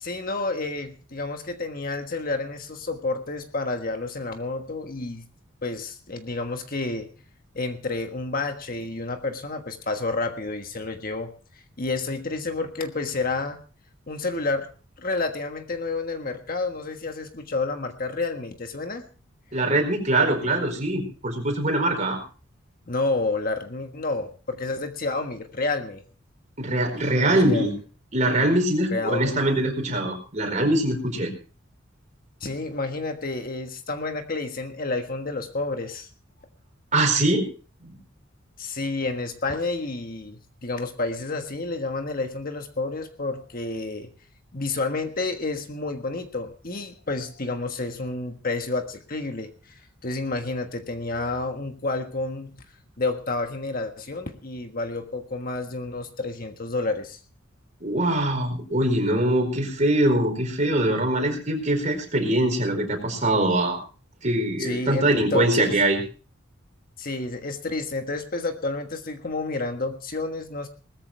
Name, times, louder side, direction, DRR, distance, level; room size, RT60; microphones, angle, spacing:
voice 1, 0.0-5.2 5.6-7.1 7.5-11.3 11.8-13.6 14.1-14.7 15.0-19.0 22.9-26.0 27.1-27.7 28.9-29.4 32.4-36.1 38.6-44.1 44.5-52.5 53.0-57.2 64.6-65.7 67.0-70.7, left 3 dB, 45° left, 6 dB, 1.5 m, -30 dB
voice 2, 19.5-22.2 26.6-27.7 28.1-31.3 36.9-37.5 37.8-37.9 57.8-63.8 64.2-66.0, right 1 dB, 35° right, 4 dB, 4.5 m, -23 dB
19.5 x 14.0 x 3.3 m, 0.37 s
head